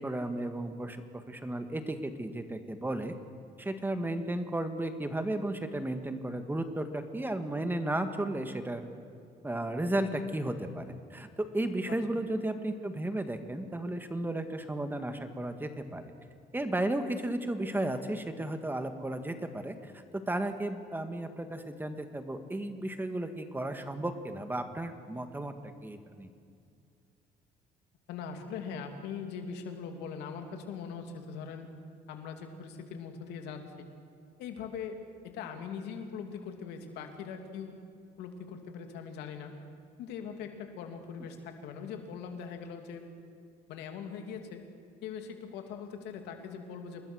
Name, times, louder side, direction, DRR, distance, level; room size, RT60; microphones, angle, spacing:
voice 1, 0.0-3.1 3.6-8.8 9.4-11.3 11.5-16.1 16.5-25.5 25.8-26.3, right 1 dB, 10° right, 8 dB, 1.8 m, -34 dB
voice 2, 28.1-31.7 32.1-33.9 34.4-35.0 35.2-37.8 38.2-39.5 40.0-43.1 43.7-44.7 45.0-47.0, left 6 dB, 90° left, 5 dB, 2.9 m, -41 dB
28.0 x 20.5 x 6.4 m, 2.4 s
cardioid pair, 110°, 17 cm